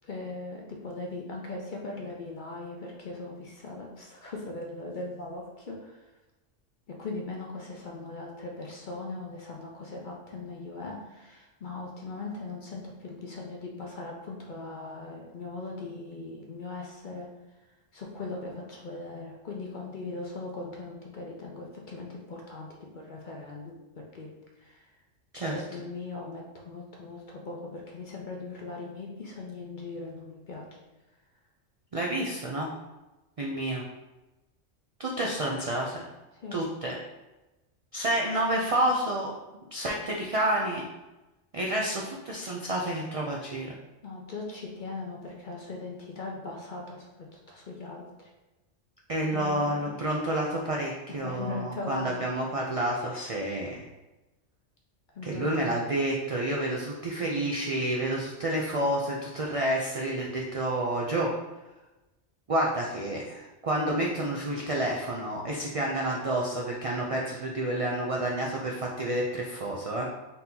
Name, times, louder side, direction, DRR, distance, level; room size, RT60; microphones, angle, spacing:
voice 1, 0.0-6.0 6.9-17.3 17.9-24.3 24.6-24.9 25.5-30.8 36.3-36.7 44.0-48.3 49.3-50.0 51.1-52.3 55.1-55.5, left 3 dB, 50° left, -1 dB, 0.6 m, -39 dB
voice 2, 31.9-32.7 33.4-33.8 35.0-36.1 36.5-36.9 37.9-39.3 39.7-40.8 41.5-43.7 49.1-53.9 55.2-61.3 62.5-70.1, right 1 dB, 60° right, -2 dB, 0.3 m, -29 dB
4.1 x 2.8 x 3.7 m, 1.1 s
omnidirectional pair, 1.3 m